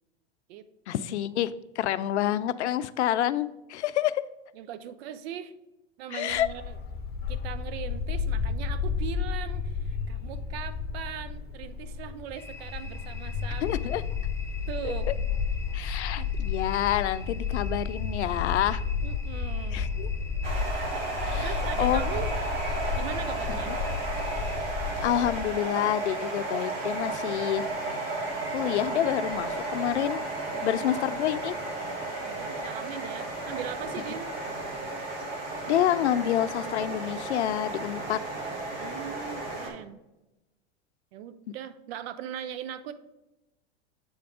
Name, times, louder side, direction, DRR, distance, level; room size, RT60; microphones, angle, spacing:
voice 1, 0.9-4.2 6.1-6.5 13.6-14.0 14.8-14.9 15.7-18.8 19.7-20.1 21.2-22.0 23.7-23.8 25.0-27.7 28.5-30.2 30.6-31.6 35.7-38.2, left 12 dB, 80° left, 15 dB, 0.5 m, -28 dB
voice 2, 4.5-5.5 6.0-6.8 7.3-13.8 14.7-15.1 19.0-19.9 21.4-22.3 22.9-23.7 30.5-31.0 32.2-34.3 38.8-40.0 41.1-42.9, right 9 dB, 65° right, 12 dB, 0.7 m, -39 dB
Bark, 6.3-25.4, left 6 dB, 30° left, 0.9 m, -32 dB
sound 1, 12.3-24.6, left 2 dB, 10° left, 0.6 m, -47 dB
sound 2, 20.4-39.7, right 2 dB, 50° right, 1.9 m, -33 dB
7.9 x 3.5 x 4.8 m, 0.97 s
hypercardioid pair, 95°, 33 cm